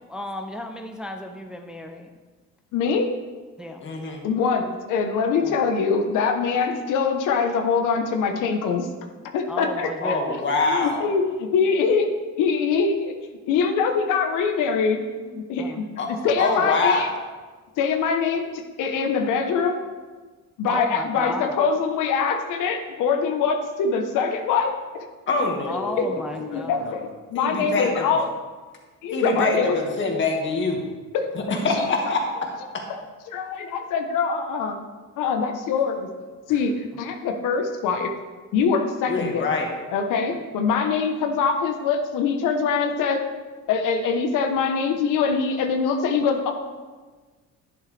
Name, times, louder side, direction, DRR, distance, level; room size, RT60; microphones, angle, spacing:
voice 1, 0.0-2.1 3.6-3.8 5.4-5.5 9.5-10.4 15.6-15.8 20.7-21.6 25.6-26.9, left 1 dB, 5° right, 4 dB, 0.5 m, -33 dB
voice 2, 2.7-3.1 4.2-8.9 9.3-10.2 10.6-12.1 12.4-13.1 13.5-17.1 17.8-18.5 18.8-19.8 20.6-25.1 26.0-26.1 26.3-27.0 27.3-28.3 29.0-29.8 31.1-31.3 31.8-31.9 33.3-34.8 35.2-36.1 36.5-38.1 38.5-39.4 39.9-43.2 43.7-46.5, left 5 dB, 80° left, 5 dB, 1.1 m, -23 dB
voice 3, 3.8-4.2 10.0-11.1 16.0-16.1 16.4-17.2 25.3-27.0 27.3-28.1 29.1-30.8 31.3-32.2 32.7-32.8 39.1-39.7, left 3 dB, 40° left, 1 dB, 1.9 m, -25 dB
11.0 x 10.5 x 3.4 m, 1.4 s
cardioid pair, 145°, 30 cm